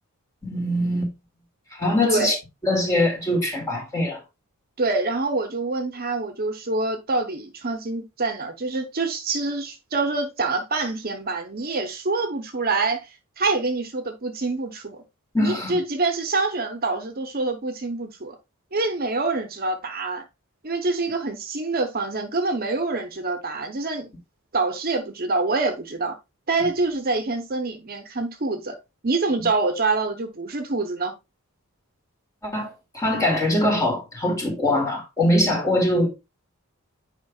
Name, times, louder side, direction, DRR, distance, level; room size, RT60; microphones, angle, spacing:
voice 1, 0.4-1.1 1.7-2.3 2.6-4.2 15.3-15.8 29.4-29.5 32.4-36.1, left 1 dB, 15° left, 2.2 m, -22 dB
voice 2, 2.0-2.3 4.8-15.0 15.4-18.4 18.7-20.2 20.6-24.1 24.5-26.2 26.5-28.8 29.0-31.1, right 3 dB, 40° right, 0.8 m, -26 dB
9.2 x 5.1 x 2.3 m
head